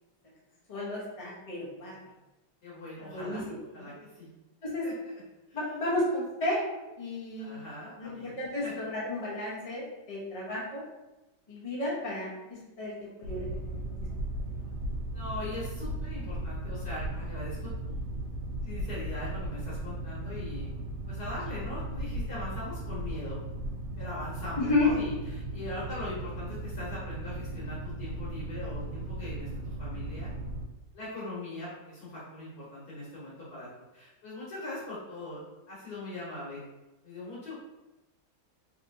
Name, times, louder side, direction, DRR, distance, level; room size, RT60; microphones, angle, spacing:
voice 1, 0.7-2.0 3.0-3.9 4.6-4.9 5.5-6.6 7.0-7.6 8.0-10.8 11.5-14.0 24.6-24.9, left 2 dB, 35° left, -6 dB, 0.6 m, -32 dB
voice 2, 2.6-3.4 3.7-4.3 4.8-4.9 5.5-5.6 7.4-8.3 8.6-8.7 15.1-18.0 18.6-20.7 21.1-23.4 24.0-30.4 30.9-33.7 33.9-35.4 35.7-36.6 37.0-37.5, left 1 dB, 65° left, -8 dB, 1.5 m, -41 dB
Boat Water vehicle, 13.2-30.7, right 1 dB, 75° right, 1.2 m, -36 dB
3.2 x 2.7 x 2.6 m, 1.0 s
omnidirectional pair, 1.9 m